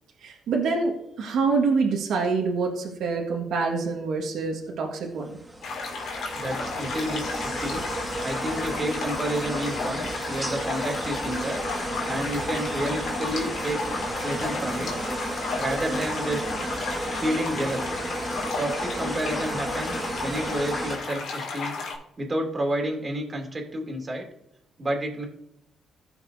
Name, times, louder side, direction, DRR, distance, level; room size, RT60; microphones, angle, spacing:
voice 1, 0.2-5.3, right 4 dB, 75° right, 0 dB, 1.6 m, -26 dB
sound 1, 5.2-21.0, right 1 dB, 10° right, 1.5 m, -33 dB
sound 2, 5.6-21.9, left 4 dB, 75° left, 2.3 m, -33 dB
voice 2, 6.3-7.8 8.2-11.6 12.1-13.8 14.2-14.9 15.6-16.4 17.2-18.0 18.6-21.8 22.2-24.3 24.8-25.2, right 1 dB, 30° right, 1 dB, 2.7 m, -30 dB
15.5 x 6.0 x 2.7 m, 0.78 s
cardioid pair, 90°, 0 cm